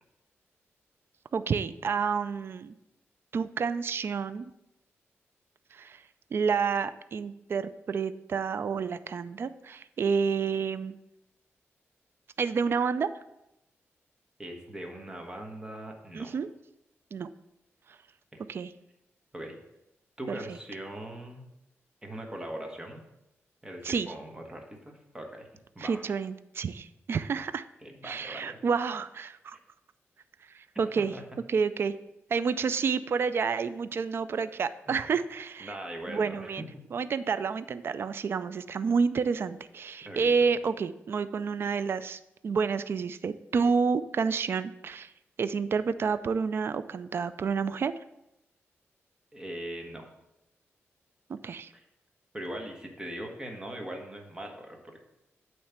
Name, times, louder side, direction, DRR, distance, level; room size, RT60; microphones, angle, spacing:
voice 1, 1.3-2.7 3.3-4.5 5.7-6.0 6.3-11.0 12.4-13.1 16.1-16.5 17.1-17.3 18.5-18.7 20.3-20.6 23.8-24.1 25.8-27.7 28.0-29.6 30.5-31.1 31.5-32.0 32.3-35.7 36.1-36.7 36.9-45.1 45.4-47.9 51.3-51.7, right 5 dB, 55° right, 13 dB, 0.3 m, -29 dB
voice 2, 14.4-16.3 18.3-18.4 19.3-19.6 20.2-21.5 22.0-23.0 23.6-25.5 25.7-26.0 27.8-28.6 31.0-31.2 34.9-35.0 35.6-36.8 40.0-40.4 49.3-50.1 51.7-51.8 52.3-55.0, right 1 dB, 15° right, 2 dB, 1.3 m, -40 dB
8.7 x 3.2 x 5.8 m, 0.89 s
wide cardioid pair, 100°, 5 cm